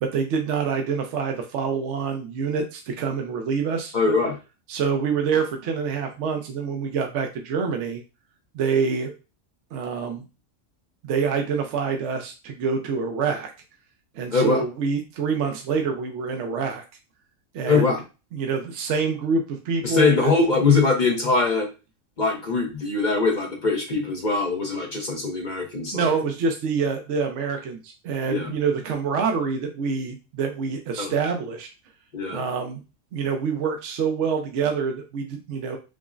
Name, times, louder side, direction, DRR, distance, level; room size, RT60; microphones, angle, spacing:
voice 1, 0.0-3.9 4.7-8.0 8.5-9.1 9.7-10.3 11.0-13.5 14.1-16.8 17.5-17.9 18.3-20.3 25.9-31.7 32.3-32.8 33.1-35.8, right 5 dB, 70° right, 4 dB, 0.9 m, -26 dB
voice 2, 3.9-4.4 14.3-14.6 17.6-18.0 19.8-21.7 22.2-26.1 28.3-28.5 31.0-31.1 32.1-32.4, left 4 dB, 45° left, 2 dB, 0.7 m, -22 dB
6.0 x 2.0 x 2.4 m, 0.30 s
omnidirectional pair, 1.4 m